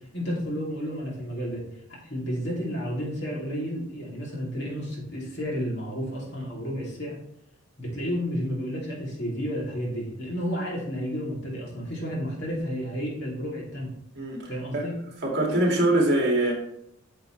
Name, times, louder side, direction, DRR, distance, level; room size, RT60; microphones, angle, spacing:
voice 1, 0.1-1.6 1.9-7.2 7.8-13.9 14.5-15.0, equal, 55° left, -4 dB, 2.9 m, -31 dB
voice 2, 14.2-14.9 15.2-16.5, right 1 dB, 50° right, -1 dB, 2.3 m, -23 dB
9.0 x 6.7 x 3.3 m, 0.71 s
head